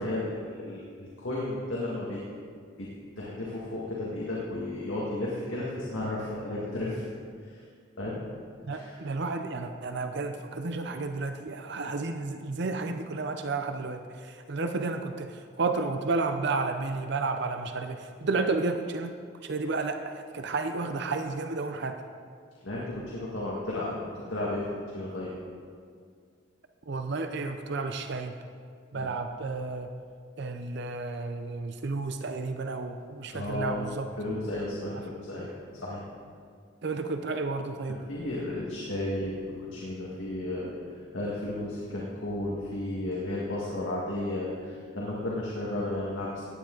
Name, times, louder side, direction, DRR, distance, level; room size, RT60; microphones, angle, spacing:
voice 1, 0.0-2.2 2.8-2.9 3.2-7.1 7.4-7.6 8.0-8.2 8.7-9.0 22.6-24.0 24.3-24.6 24.9-25.3 28.9-29.1 33.3-33.8 34.2-36.0 37.9-39.3 39.6-40.7 41.1-46.5, left 1 dB, 70° left, -6 dB, 1.9 m, -33 dB
voice 2, 8.6-19.1 19.4-22.0 26.9-28.3 28.9-29.9 30.4-34.1 36.8-38.0, right 3 dB, 60° right, 7 dB, 0.6 m, -32 dB
16.0 x 10.0 x 3.9 m, 2.1 s
head